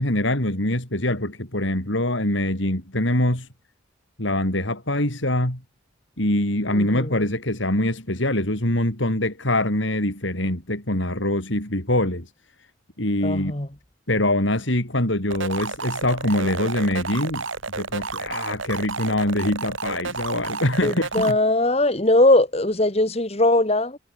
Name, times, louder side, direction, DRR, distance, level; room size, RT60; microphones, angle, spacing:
voice 1, 0.0-3.5 4.2-5.6 6.2-12.3 13.0-13.5 14.1-17.4 17.7-21.4, left 1 dB, 70° left, 5.2 m, -24 dB
voice 2, 6.7-7.2 13.2-13.7 20.8-24.0, left 2 dB, 30° left, 1.8 m, -20 dB
sound 1, 15.3-21.3, right 4 dB, 75° right, 3.8 m, -31 dB
head